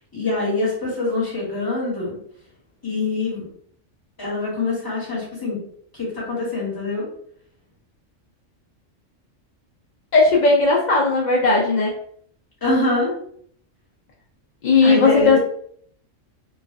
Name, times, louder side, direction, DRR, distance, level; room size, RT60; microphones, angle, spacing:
voice 1, 0.1-2.2 2.8-3.5 4.2-5.6 5.9-7.1 12.6-13.1 14.8-15.4, left 2 dB, 15° left, -6 dB, 1.2 m, -24 dB
voice 2, 10.1-11.9 14.6-15.4, left 3 dB, 60° left, -3 dB, 0.4 m, -16 dB
3.1 x 2.4 x 2.5 m, 0.62 s
omnidirectional pair, 1.3 m